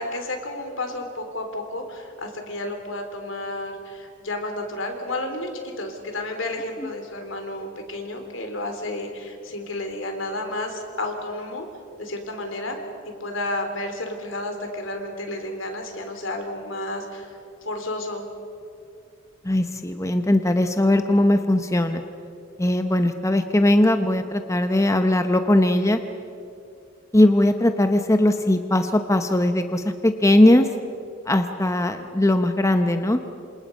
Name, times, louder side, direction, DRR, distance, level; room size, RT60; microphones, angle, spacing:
voice 1, 0.0-11.7 12.0-12.8 13.2-18.3, left 1 dB, 70° left, 4 dB, 3.7 m, -31 dB
voice 2, 19.4-22.0 22.6-26.0 27.1-30.7 31.3-33.2, left 1 dB, 15° left, 7 dB, 0.8 m, -19 dB
28.0 x 26.5 x 5.4 m, 2.6 s
head